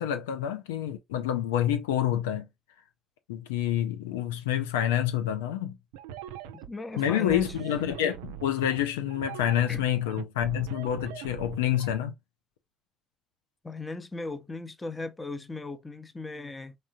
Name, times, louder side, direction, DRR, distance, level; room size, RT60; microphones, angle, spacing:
voice 1, 0.0-2.5 3.3-5.8 7.0-12.1, left 11 dB, 80° left, 0.4 m, -28 dB
sound 1, 5.9-11.9, right 10 dB, 75° right, 0.3 m, -41 dB
voice 2, 6.5-7.5 9.7-9.8 13.6-16.8, left 2 dB, 25° left, 0.7 m, -37 dB
3.6 x 3.2 x 2.6 m
hypercardioid pair, 55°, 0 cm